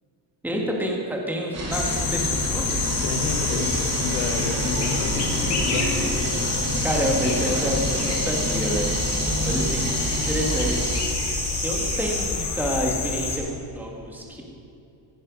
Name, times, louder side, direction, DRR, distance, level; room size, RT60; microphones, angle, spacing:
voice 1, 0.4-2.8 6.8-8.9 9.4-10.9 11.6-14.4, equal, 5° right, -1 dB, 1.7 m, -28 dB
sound 1, 1.5-11.0, right 1 dB, 35° right, 2.5 m, -29 dB
sound 2, 1.7-13.4, left 4 dB, 55° left, 2.5 m, -27 dB
sound 3, 2.8-12.3, right 4 dB, 50° right, 2.5 m, -34 dB
voice 2, 3.0-6.1, left 6 dB, 90° left, 5 dB, 1.3 m, -30 dB
15.0 x 11.5 x 5.3 m, 2.7 s
cardioid pair, 165°, 46 cm